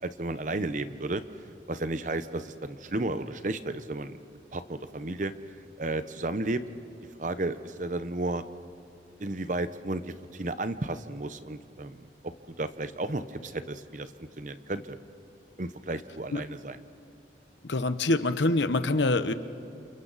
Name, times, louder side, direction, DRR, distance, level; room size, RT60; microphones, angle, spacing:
voice 1, 0.0-1.2 1.7-4.2 4.5-5.3 5.8-6.6 7.2-8.4 9.2-14.1 14.4-15.0 15.6-16.8, right 2 dB, 45° right, 12 dB, 0.8 m, -33 dB
voice 2, 17.7-19.3, left 2 dB, 85° left, 11 dB, 0.9 m, -25 dB
29.0 x 28.5 x 4.1 m, 2.7 s
head